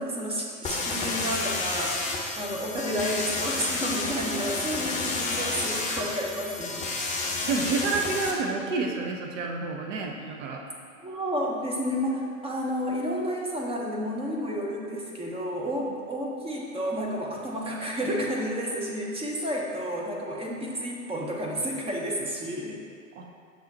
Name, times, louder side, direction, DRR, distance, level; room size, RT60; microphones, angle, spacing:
voice 1, 0.0-6.8 11.0-22.8, equal, 15° right, -2 dB, 0.9 m, -31 dB
sound 1, 0.6-8.3, left 3 dB, 15° left, 0.8 m, -30 dB
voice 2, 7.4-10.6 23.1-23.3, right 4 dB, 60° right, 1 dB, 0.9 m, -29 dB
6.5 x 4.0 x 4.1 m, 2.2 s
hypercardioid pair, 100°, 42 cm